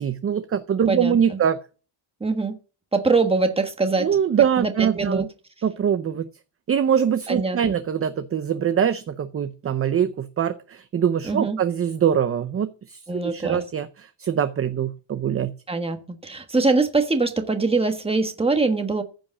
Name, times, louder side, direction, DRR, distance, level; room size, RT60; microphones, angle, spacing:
voice 1, 0.0-1.6 4.0-5.3 5.6-6.3 6.7-15.5, right 8 dB, 30° right, 0.6 m, -23 dB
voice 2, 2.2-2.6 2.9-4.1 4.6-5.3 7.3-7.6 11.2-11.6 13.1-13.6 15.7-19.0, right 3 dB, 10° right, 1.4 m, -23 dB
15.0 x 5.2 x 7.1 m
cardioid pair, 155°, 48 cm